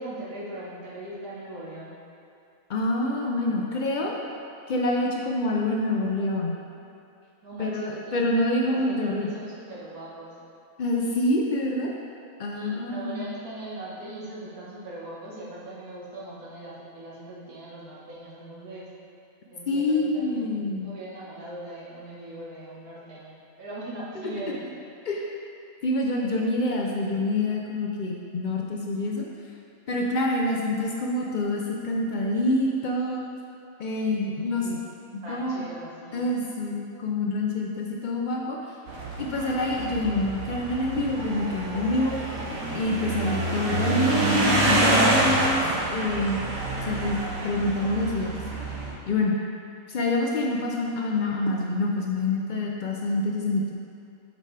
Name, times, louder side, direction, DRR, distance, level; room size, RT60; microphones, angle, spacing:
voice 1, 0.0-2.0 7.4-10.4 12.5-18.9 19.5-24.6 34.4-34.8 35.2-36.3, right 1 dB, 90° right, -7 dB, 1.9 m, -40 dB
voice 2, 2.7-4.1 4.7-6.5 7.6-9.3 10.8-11.9 12.4-13.3 19.7-20.9 25.1-25.3 25.8-29.3 29.9-33.3 33.8-34.8 35.3-35.7 36.1-38.8 39.2-42.1 42.7-46.4 46.8-47.2 47.4-48.3 49.1-49.4 49.9-53.7, left 2 dB, 75° left, -1 dB, 0.4 m, -26 dB
sound 1, 38.9-48.9, right 2 dB, 65° right, 1.3 m, -27 dB
7.4 x 5.3 x 3.3 m, 2.6 s
omnidirectional pair, 1.5 m